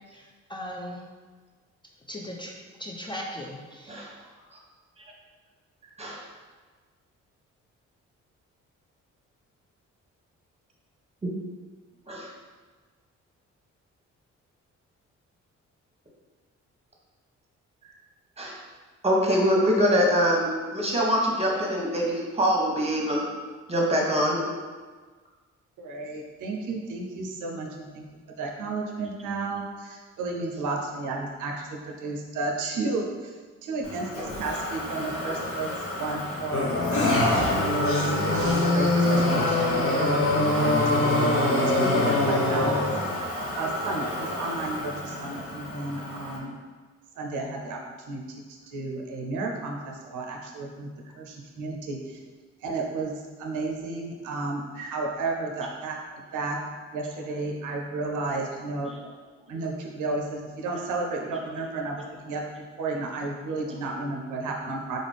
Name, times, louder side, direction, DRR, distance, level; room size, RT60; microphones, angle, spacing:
voice 1, 0.5-1.0 2.1-2.5 2.8-4.1, equal, 15° left, -1 dB, 0.5 m, -37 dB
voice 2, 19.0-23.3 23.7-24.4, equal, 20° right, -2 dB, 1.0 m, -24 dB
voice 3, 25.8-28.0 28.4-33.3 33.6-36.7 37.2-42.8 43.6-46.6 47.2-47.8 48.1-50.9 51.1-52.2 52.6-53.1 53.4-56.0 56.3-56.6 56.9-58.9 59.5-65.0, right 3 dB, 75° right, 0 dB, 0.6 m, -32 dB
Motor vehicle (road), 33.8-46.4, left 1 dB, 85° left, 1.1 m, -32 dB
sound 1, 36.5-43.1, left 2 dB, 45° left, 1.0 m, -23 dB
3.7 x 2.4 x 3.4 m, 1.4 s
supercardioid pair, 55°, 31 cm